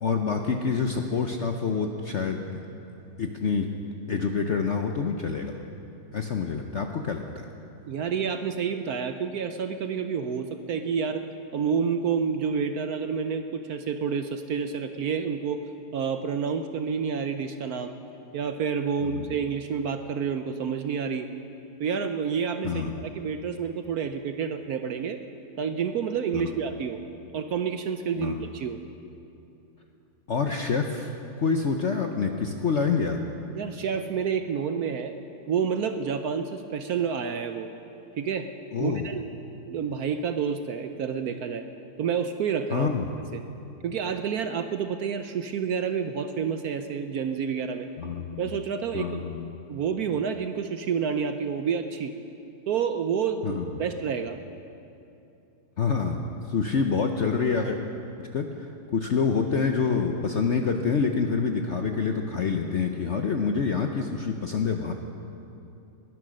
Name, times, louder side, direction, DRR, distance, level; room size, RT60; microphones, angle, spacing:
voice 1, 0.0-2.6 3.2-3.7 4.1-5.6 6.1-7.5 19.1-19.4 22.6-22.9 26.3-26.5 28.2-28.4 30.3-31.1 31.4-33.2 38.7-39.1 42.7-43.1 48.0-48.5 48.9-49.5 53.4-53.7 55.8-56.2 56.5-57.8 58.2-64.9, left 5 dB, 60° left, 4 dB, 0.8 m, -27 dB
voice 2, 7.9-11.2 11.5-15.6 15.9-18.0 18.3-21.3 21.8-25.2 25.6-27.0 27.3-28.8 33.5-35.1 35.5-37.7 38.2-38.5 38.8-39.3 39.6-41.6 42.0-42.9 43.3-43.4 43.8-47.9 48.4-49.3 49.7-52.1 52.7-54.4, right 6 dB, 65° right, 8 dB, 1.0 m, -29 dB
21.0 x 10.5 x 6.4 m, 2.7 s
omnidirectional pair, 2.0 m